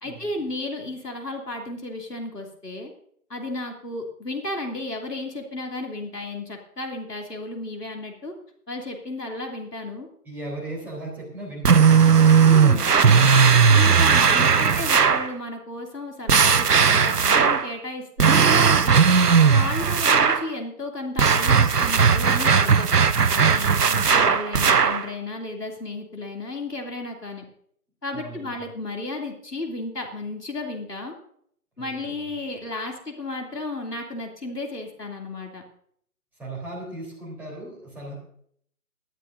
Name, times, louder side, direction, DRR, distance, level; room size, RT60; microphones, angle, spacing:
voice 1, 0.0-2.9 3.3-8.3 8.7-10.1 12.5-12.9 13.7-19.0 19.4-22.9 23.3-27.4 28.0-31.1 31.8-35.6, left 2 dB, 90° left, 1 dB, 2.9 m, -33 dB
voice 2, 10.2-13.5 14.4-15.1 23.5-23.9 28.1-28.6 31.8-32.3 36.4-38.1, right 2 dB, 5° right, -6 dB, 3.6 m, -38 dB
sound 1, 11.6-15.3 16.3-17.7 18.2-20.5 21.2-25.0, right 6 dB, 90° right, 0.8 m, -17 dB
19.5 x 12.0 x 2.6 m, 0.66 s
figure-of-eight pair, 145°, 46 cm